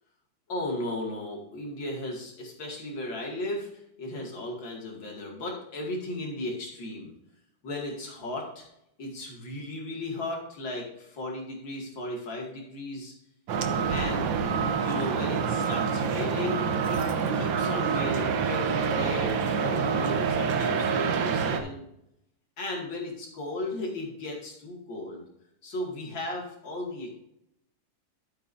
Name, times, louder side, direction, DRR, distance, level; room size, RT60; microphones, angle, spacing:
voice 1, 0.5-3.7 4.0-7.1 7.6-8.6 9.0-13.1 13.9-17.0 17.3-21.8 22.6-25.3 25.6-27.1, left 1 dB, 80° left, -1 dB, 3.1 m, -36 dB
sound 1, 13.5-21.6, right 6 dB, 85° right, 1.7 m, -27 dB
13.0 x 7.6 x 2.7 m, 0.80 s
omnidirectional pair, 2.1 m